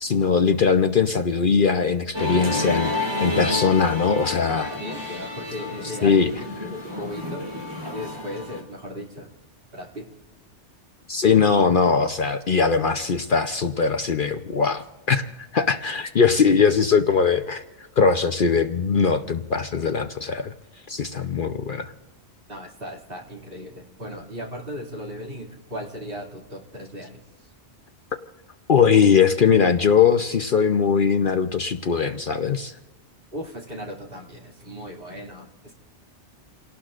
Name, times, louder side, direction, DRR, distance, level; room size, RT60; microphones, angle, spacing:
voice 1, 0.0-4.7 6.0-6.3 11.1-15.2 15.5-17.6 18.0-20.5 20.9-21.9 28.7-32.7, left 6 dB, 50° left, 7 dB, 0.8 m, -20 dB
Musical instrument, 2.1-8.6, left 2 dB, 20° right, 3.5 m, -30 dB
voice 2, 4.6-7.4 7.9-9.3 9.7-10.1 22.5-27.2 33.3-35.7, equal, 50° right, -1 dB, 2.9 m, -37 dB
29.0 x 18.0 x 2.5 m, 1.1 s
omnidirectional pair, 1.2 m